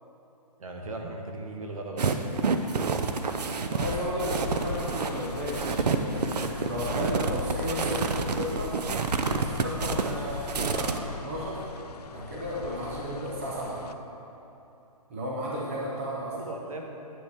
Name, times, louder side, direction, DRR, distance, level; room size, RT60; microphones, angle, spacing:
voice 1, 0.6-2.2 16.3-16.9, right 2 dB, 60° right, 2 dB, 1.2 m, -37 dB
crunching snow, 2.0-11.0, right 5 dB, 90° right, 0.7 m, -29 dB
voice 2, 3.5-8.7 9.3-11.6 12.1-13.8 15.1-16.3, equal, 20° right, -4 dB, 0.7 m, -34 dB
sound 1, 3.8-13.9, left 6 dB, 80° left, 0.4 m, -39 dB
9.6 x 7.8 x 3.5 m, 2.9 s
hypercardioid pair, 175°, 20 cm